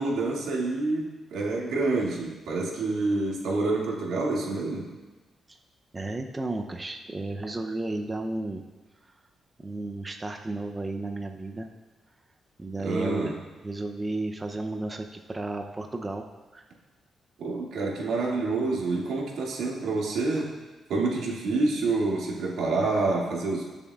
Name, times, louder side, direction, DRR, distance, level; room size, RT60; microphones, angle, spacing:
voice 1, 0.0-4.9 12.8-13.3 17.4-20.5 20.9-23.6, right 3 dB, 90° right, -3 dB, 2.2 m, -27 dB
voice 2, 5.9-8.6 9.0-9.1 9.6-11.7 12.6-16.2 16.5-16.7, right 2 dB, 20° right, 4 dB, 0.6 m, -33 dB
19.5 x 7.1 x 2.4 m, 1.2 s
cardioid pair, 120°, 0 cm